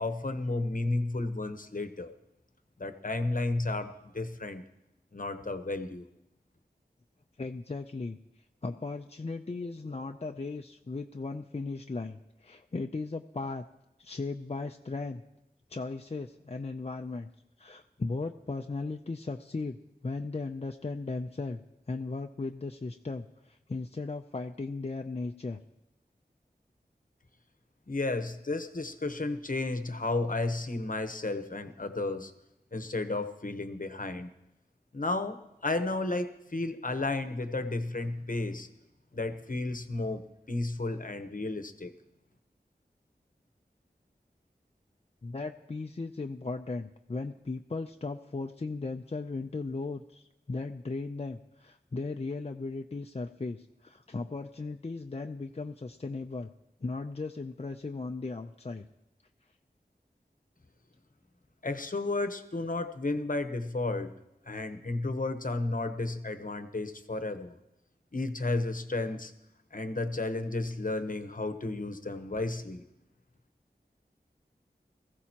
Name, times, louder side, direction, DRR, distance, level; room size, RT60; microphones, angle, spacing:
voice 1, 0.0-2.1 2.8-4.6 5.1-6.0 27.9-32.3 32.7-34.3 34.9-38.7 39.1-41.9 61.6-64.2 64.5-67.6 68.1-69.3 69.7-72.8, left 2 dB, 55° left, 9 dB, 1.0 m, -33 dB
voice 2, 7.4-8.2 8.6-13.6 14.0-15.2 15.7-17.3 17.6-19.8 20.0-21.6 21.9-25.6 45.2-56.5 56.8-58.9, left 3 dB, 40° left, 4 dB, 0.5 m, -37 dB
20.5 x 14.5 x 2.9 m, 0.89 s
wide cardioid pair, 45°, 17 cm